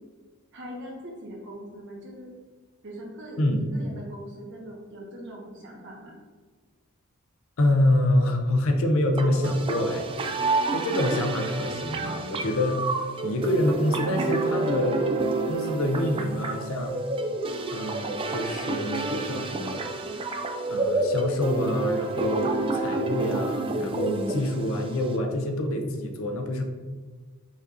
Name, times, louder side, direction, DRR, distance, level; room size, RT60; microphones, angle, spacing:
voice 1, 0.5-2.3 2.8-6.2, equal, 55° right, -2 dB, 1.2 m, -41 dB
voice 2, 3.4-3.9 7.6-10.1 10.7-12.8 13.2-15.1 15.5-16.9 17.7-19.8 20.7-26.6, left 1 dB, 65° left, 4 dB, 0.6 m, -26 dB
sound 1, 9.2-25.2, right 2 dB, 25° right, 0.3 m, -29 dB
5.0 x 4.0 x 2.5 m, 1.4 s
head